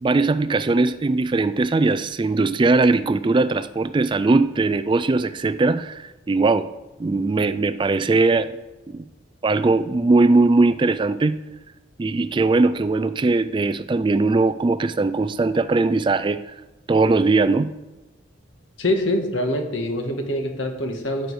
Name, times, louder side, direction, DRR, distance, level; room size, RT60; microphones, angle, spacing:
voice 1, 0.0-6.7 7.0-8.6 8.9-9.0 9.4-11.4 12.0-16.5 16.9-17.7, right 3 dB, 25° right, 13 dB, 0.3 m, -20 dB
voice 2, 18.8-21.3, left 1 dB, 75° left, 4 dB, 1.7 m, -24 dB
14.0 x 7.8 x 4.8 m, 1.1 s
head